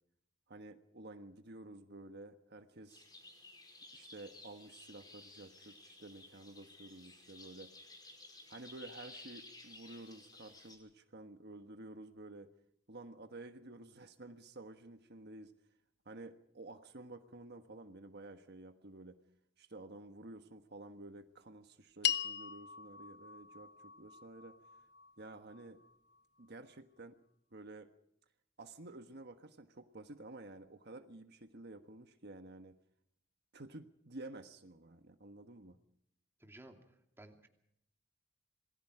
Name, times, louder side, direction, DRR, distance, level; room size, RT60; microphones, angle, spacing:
voice 1, 0.5-3.1 3.9-7.7 8.5-12.5 12.9-15.5 16.0-19.2 19.6-24.6 25.2-25.8 26.4-27.1 27.5-27.9 28.6-32.7 33.5-35.8, right 2 dB, 60° right, 7 dB, 1.4 m, -51 dB
sound 1, 2.9-10.8, left 2 dB, 20° left, 5.2 m, -55 dB
sound 2, 22.0-26.5, left 10 dB, 60° left, 1.1 m, -41 dB
voice 2, 36.4-37.5, right 1 dB, 15° right, 3 dB, 2.7 m, -56 dB
27.5 x 20.5 x 4.9 m, 0.73 s
head